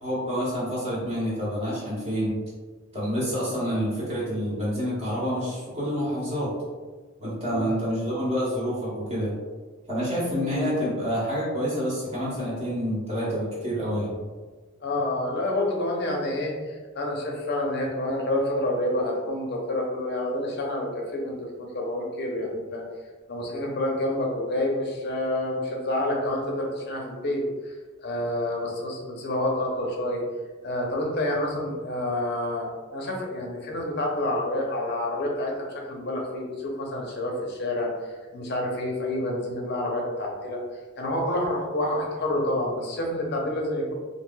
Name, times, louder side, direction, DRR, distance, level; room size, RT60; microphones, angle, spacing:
voice 1, 0.0-2.4 2.9-6.6 7.2-9.3 9.9-14.1, equal, 30° right, -8 dB, 1.0 m, -28 dB
voice 2, 14.8-22.8 23.3-30.2 30.6-35.5 35.9-40.6 41.0-43.9, left 1 dB, 55° left, -1 dB, 0.6 m, -28 dB
3.1 x 2.7 x 2.2 m, 1.4 s
head